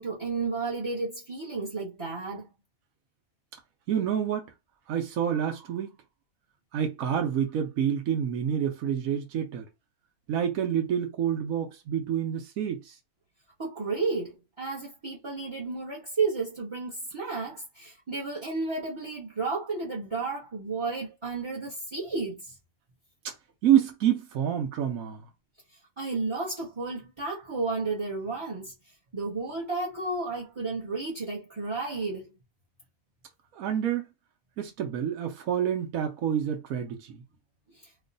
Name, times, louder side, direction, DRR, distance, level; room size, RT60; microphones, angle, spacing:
voice 1, 0.0-2.5 13.6-22.5 26.0-28.7 29.1-32.3 37.7-37.9, right 3 dB, 25° right, 0.7 m, -32 dB
voice 2, 3.9-4.5 4.9-5.9 6.7-9.7 10.3-13.0 23.6-25.2 33.5-34.0 34.6-37.2, right 9 dB, 70° right, 1.1 m, -28 dB
3.1 x 2.2 x 3.8 m
omnidirectional pair, 1.6 m